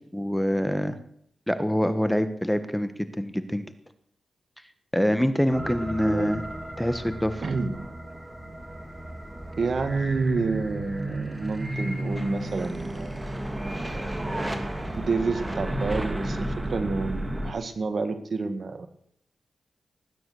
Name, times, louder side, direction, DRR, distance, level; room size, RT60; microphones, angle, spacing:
voice 1, 0.1-1.0 1.5-3.6 4.9-6.4 6.8-7.4, equal, 5° left, 10 dB, 1.4 m, -25 dB
sound 1, 5.5-17.5, right 1 dB, 15° right, 2.8 m, -33 dB
voice 2, 6.0-6.3 7.4-7.9 9.6-13.2 15.0-18.9, right 4 dB, 55° right, 9 dB, 2.1 m, -29 dB
20.0 x 9.5 x 6.5 m, 0.66 s
cardioid pair, 65°, 0 cm